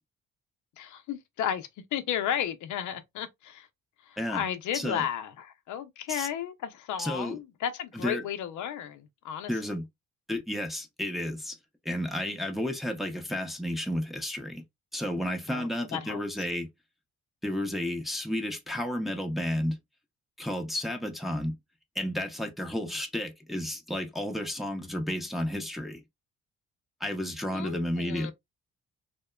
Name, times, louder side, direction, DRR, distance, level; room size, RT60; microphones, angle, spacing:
voice 1, 0.8-3.7 4.1-9.5 15.5-16.2 22.8-22.9 27.5-28.3, left 9 dB, 75° left, 0.5 m, -34 dB
voice 2, 4.7-5.0 6.1-6.3 7.0-7.4 7.9-8.2 9.5-9.9 10.3-11.6 11.8-14.6 14.9-16.7 17.4-19.8 20.4-21.6 22.0-26.0 27.0-28.3, left 1 dB, ahead, 0.6 m, -32 dB
2.9 x 2.1 x 2.2 m
cardioid pair, 90°, 30 cm